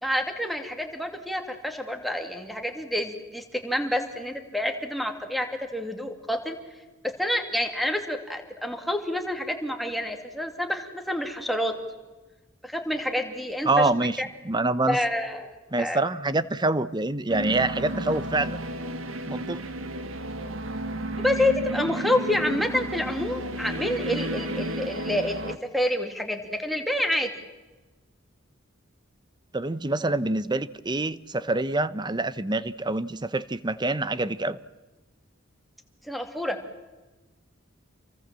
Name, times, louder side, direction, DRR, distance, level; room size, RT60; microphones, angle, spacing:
voice 1, 0.0-5.5 5.7-6.6 7.2-11.7 12.6-13.9 14.2-14.3 14.9-15.5 15.8-16.0 21.2-27.3 36.1-36.6, left 1 dB, ahead, 2.6 m, -28 dB
voice 2, 13.6-15.0 15.7-18.6 19.3-19.6 29.5-34.6, right 2 dB, 20° right, 0.8 m, -26 dB
sound 1, 17.3-25.6, right 1 dB, 85° right, 1.9 m, -32 dB
29.0 x 23.0 x 7.6 m
head